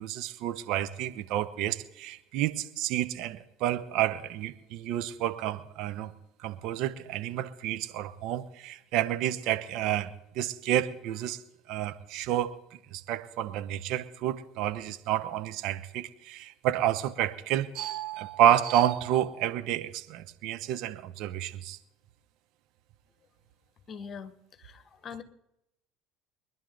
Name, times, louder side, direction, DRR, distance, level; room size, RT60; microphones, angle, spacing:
voice 1, 0.0-6.1 6.4-11.4 11.7-12.5 12.9-21.8, right 11 dB, 65° right, 12 dB, 1.0 m, -30 dB
voice 2, 23.9-25.2, left 6 dB, 40° left, 12 dB, 1.5 m, -43 dB
23.5 x 11.0 x 4.0 m, 0.84 s
hypercardioid pair, 70°, 0 cm